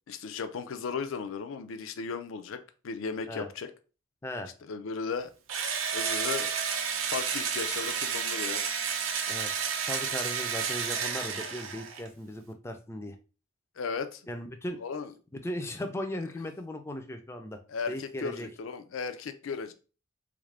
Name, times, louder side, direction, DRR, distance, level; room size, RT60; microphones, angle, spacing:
voice 1, 0.1-3.7 4.6-5.3 5.9-6.6 7.1-8.6 13.8-14.2 14.8-15.1 17.7-19.7, left 5 dB, 85° left, 0.4 m, -36 dB
Engine / Drill, 5.5-12.1, right 6 dB, 85° right, 0.6 m, -31 dB
voice 2, 9.3-13.2 14.3-14.8 15.3-17.6 17.9-18.5, left 1 dB, 15° left, 0.4 m, -37 dB
3.5 x 2.5 x 3.2 m
head